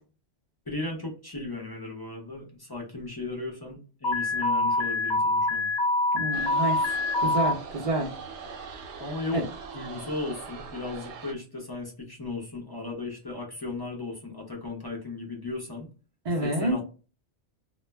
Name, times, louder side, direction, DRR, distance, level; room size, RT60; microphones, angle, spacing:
voice 1, 0.7-5.7 9.0-9.4 9.7-15.9 16.4-16.8, left 3 dB, 30° left, -1 dB, 0.4 m, -36 dB
Alarm, 4.0-7.5, left 2 dB, 70° left, 0.8 m, -25 dB
voice 2, 6.1-6.8 7.2-8.1 9.3-9.4 16.3-16.8, right 1 dB, 45° right, -4 dB, 0.6 m, -28 dB
sound 1, 6.3-11.3, right 5 dB, 85° right, 0.9 m, -41 dB
2.2 x 2.1 x 3.2 m, 0.35 s
omnidirectional pair, 1.1 m